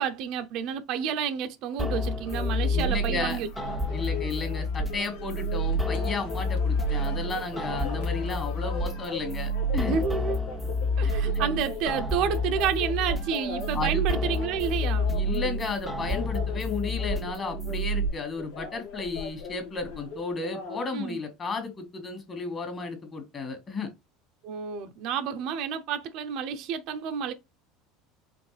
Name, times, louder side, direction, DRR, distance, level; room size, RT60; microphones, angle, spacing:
voice 1, 0.0-3.5 9.9-10.4 11.0-15.2 20.9-21.2 24.4-27.3, right 8 dB, 55° right, 0.6 m, -30 dB
sound 1, 1.8-18.1, equal, ahead, 0.7 m, -29 dB
sound 2, 2.3-20.8, left 5 dB, 90° left, 1.6 m, -39 dB
voice 2, 2.7-3.4 3.9-10.0 11.0-11.1 13.7-14.0 15.1-23.9, left 4 dB, 25° left, 1.8 m, -33 dB
5.1 x 3.1 x 3.3 m
cardioid pair, 145°, 0 cm